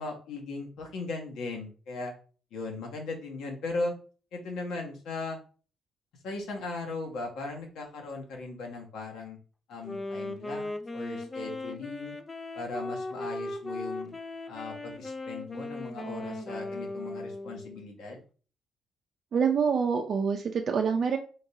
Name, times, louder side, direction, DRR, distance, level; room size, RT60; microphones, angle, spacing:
voice 1, 0.0-2.1 2.5-3.9 4.3-5.4 6.2-9.4 9.7-12.1 12.5-14.1 14.5-18.2, left 3 dB, 90° left, 1 dB, 1.5 m, -38 dB
Wind instrument woodwind instrument, 9.8-17.9, left 2 dB, 20° left, 0.4 m, -38 dB
voice 2, 19.3-21.2, right 6 dB, 40° right, 3 dB, 0.5 m, -26 dB
3.8 x 2.7 x 4.8 m, 0.39 s
cardioid pair, 170°, 0 cm